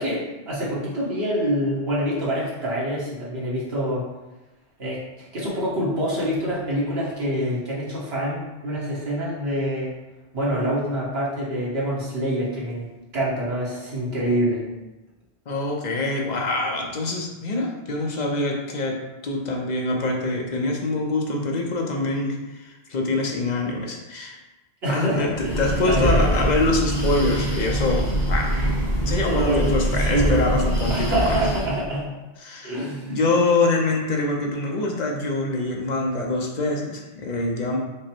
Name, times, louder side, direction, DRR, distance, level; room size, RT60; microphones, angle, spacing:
voice 1, 0.0-4.0 4.8-9.9 10.3-12.9 13.1-14.6 24.8-26.1 29.3-29.7 30.0-30.4 30.9-32.0 32.6-33.2, equal, 65° right, -7 dB, 1.6 m, -26 dB
voice 2, 15.5-24.4 24.9-28.5 29.1-31.3 32.4-32.8 33.1-37.8, left 2 dB, 45° left, 1 dB, 0.7 m, -25 dB
Breathing, 25.2-31.9, right 1 dB, 25° left, 1.2 m, -23 dB
5.2 x 2.1 x 4.3 m, 1.1 s
omnidirectional pair, 1.1 m